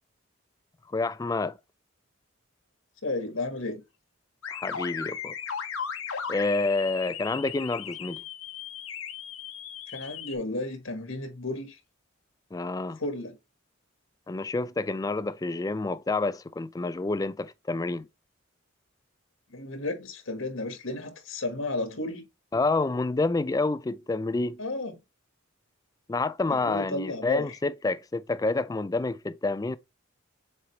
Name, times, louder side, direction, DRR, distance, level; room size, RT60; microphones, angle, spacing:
voice 1, 0.9-1.6 4.5-5.3 6.3-8.2 12.5-13.0 14.3-18.1 22.5-24.6 26.1-29.8, left 3 dB, 15° left, 0.3 m, -28 dB
voice 2, 3.0-3.8 9.9-11.8 13.0-13.4 19.5-22.2 24.6-25.0 26.5-27.6, left 2 dB, 70° left, 1.5 m, -33 dB
sound 1, 4.4-10.3, left 7 dB, 90° left, 1.2 m, -37 dB
7.5 x 4.5 x 3.1 m
head